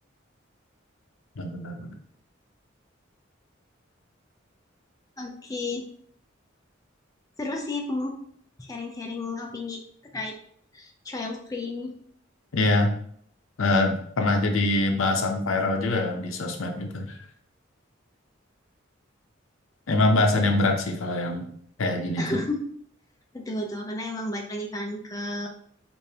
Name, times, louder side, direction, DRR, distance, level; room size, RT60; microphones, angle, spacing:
voice 1, 1.4-1.9 12.5-12.9 13.6-17.2 19.9-21.5 21.8-22.4, left 2 dB, 90° left, 4 dB, 0.7 m, -24 dB
voice 2, 5.2-5.9 7.4-8.1 8.6-9.8 10.1-10.4 10.7-12.0 22.2-22.6 23.3-25.5, left 2 dB, 20° left, 1 dB, 0.5 m, -32 dB
4.9 x 2.6 x 2.8 m, 0.63 s
head